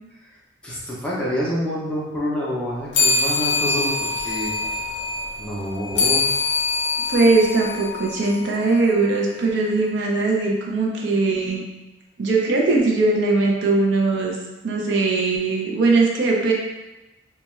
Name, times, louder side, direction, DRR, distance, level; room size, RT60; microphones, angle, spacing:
voice 1, 0.6-4.5 5.4-6.3, equal, 5° left, -7 dB, 0.4 m, -27 dB
sound 1, 2.9-8.8, left 3 dB, 75° left, 0.5 m, -24 dB
voice 2, 7.1-11.6 12.2-14.4 14.6-16.5, right 3 dB, 65° right, -1 dB, 0.4 m, -20 dB
2.2 x 2.2 x 3.0 m, 1.0 s
head